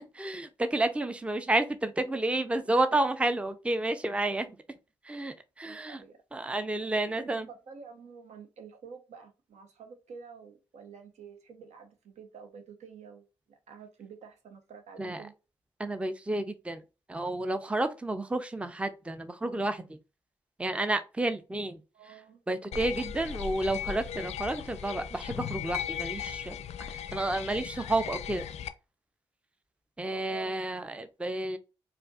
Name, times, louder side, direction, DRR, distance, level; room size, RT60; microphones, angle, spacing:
voice 1, 0.1-4.6 5.0-6.0 6.3-7.5 15.0-15.2 15.8-16.8 17.1-20.0 20.6-21.8 22.5-28.5 30.0-31.6, right 2 dB, 10° right, 0.5 m, -31 dB
voice 2, 5.6-6.2 7.0-15.3 21.9-22.4 30.0-30.5, right 6 dB, 70° right, 0.9 m, -49 dB
sound 1, 22.7-28.7, left 9 dB, 65° left, 0.4 m, -37 dB
4.5 x 2.5 x 2.4 m
hypercardioid pair, 40°, 12 cm